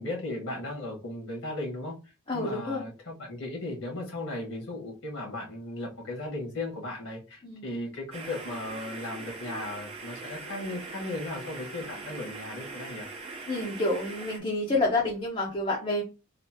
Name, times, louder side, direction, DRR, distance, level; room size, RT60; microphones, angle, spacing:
voice 1, 0.0-2.0 2.3-13.1, left 2 dB, 75° left, -1 dB, 1.5 m, -36 dB
voice 2, 2.3-2.8 7.4-7.7 13.5-16.0, left 2 dB, 25° left, -2 dB, 0.7 m, -28 dB
sound 1, 8.1-14.4, right 3 dB, 30° right, 0.7 m, -41 dB
3.2 x 2.7 x 2.8 m, 0.31 s
head